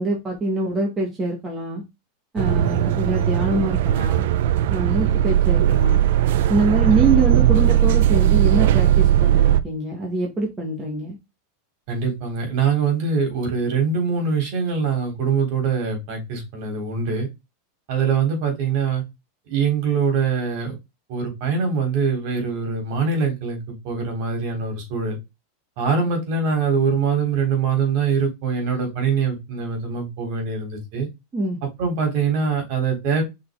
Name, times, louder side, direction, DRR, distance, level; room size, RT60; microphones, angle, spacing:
voice 1, 0.0-1.8 2.3-4.3 4.7-6.0 6.5-11.2 31.3-31.6, right 2 dB, 15° right, -1 dB, 1.8 m, -24 dB
sound 1, 2.4-9.6, right 11 dB, 65° right, 0.5 m, -18 dB
voice 2, 2.5-3.0 4.9-5.2 6.8-7.2 11.9-17.3 17.9-19.0 19.5-20.8 21.1-23.6 23.8-25.2 25.8-31.1 31.8-33.2, right 5 dB, 45° right, 3 dB, 3.8 m, -23 dB
5.9 x 4.2 x 3.8 m, 0.22 s
supercardioid pair, 160°, 0 cm